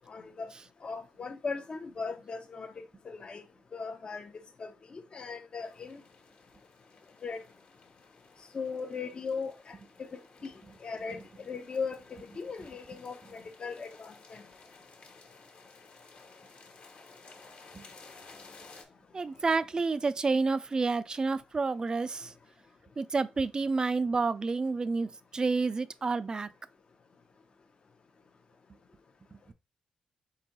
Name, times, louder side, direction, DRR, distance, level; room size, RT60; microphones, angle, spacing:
voice 1, 0.1-0.5 0.8-3.4 3.7-6.0 7.2-7.4 8.5-10.5 10.8-11.2 11.5-14.4, left 5 dB, 45° left, 0.5 m, -38 dB
sound 1, 5.6-18.8, left 4 dB, 65° left, 1.2 m, -55 dB
voice 2, 19.1-22.3 23.0-26.5, right 4 dB, 35° right, 0.3 m, -29 dB
4.4 x 3.8 x 2.8 m
cardioid pair, 80°, 2 cm